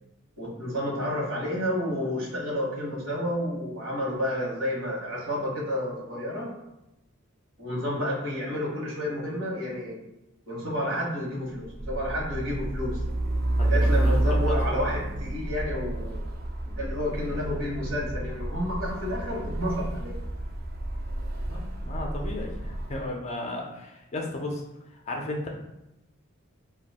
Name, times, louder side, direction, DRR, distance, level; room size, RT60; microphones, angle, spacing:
voice 1, 0.4-6.5 7.6-10.0 10.5-13.0 13.6-16.2 16.7-20.1, equal, 65° right, -3 dB, 1.0 m, -30 dB
Truck, 11.6-23.0, right 1 dB, 45° right, 0.4 m, -29 dB
voice 2, 13.6-14.1 14.5-14.8 21.5-24.6 25.1-25.5, left 2 dB, 30° left, 0 dB, 0.4 m, -34 dB
2.6 x 2.2 x 4.0 m, 0.91 s
head